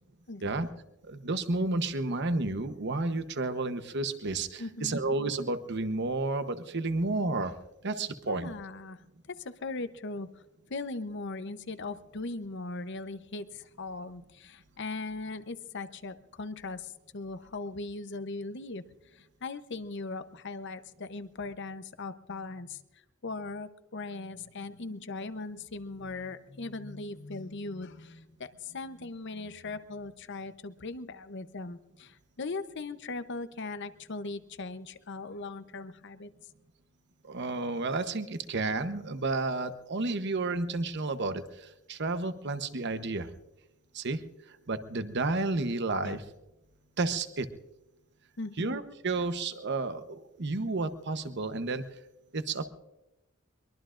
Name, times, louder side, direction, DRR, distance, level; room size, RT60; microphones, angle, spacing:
voice 1, 0.3-0.6 4.6-5.0 8.3-9.0 9.3-10.3 10.7-18.8 19.1-22.8 23.2-36.3 46.0-46.2 48.4-48.7, left 3 dB, 60° left, 11 dB, 0.8 m, -39 dB
voice 2, 1.1-7.5 7.8-8.5 37.2-43.3 43.9-44.2 44.7-46.2 47.0-47.5 48.6-51.8 52.3-52.7, right 3 dB, 55° right, 10 dB, 1.0 m, -31 dB
23.0 x 22.5 x 2.5 m, 0.98 s
head